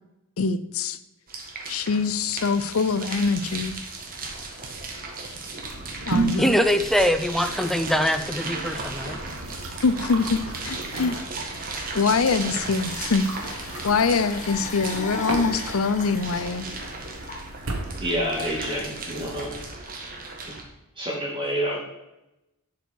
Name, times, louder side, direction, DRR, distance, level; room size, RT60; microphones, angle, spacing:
voice 1, 0.4-1.0 1.7-3.7 6.1-6.6 9.8-11.2 11.4-11.6 11.9-16.7, left 4 dB, 70° left, 13 dB, 0.6 m, -24 dB
sound 1, 1.3-20.6, right 3 dB, 40° right, 1.6 m, -36 dB
sound 2, 5.6-19.5, right 2 dB, 70° right, 1.4 m, -35 dB
voice 2, 6.4-9.2, equal, ahead, 8 dB, 0.5 m, -23 dB
sound 3, 12.8-17.8, left 2 dB, 35° left, 1.1 m, -38 dB
voice 3, 18.0-19.5 20.4-20.5 21.0-21.8, equal, 25° right, -4 dB, 2.2 m, -28 dB
11.0 x 5.3 x 4.6 m, 0.94 s
head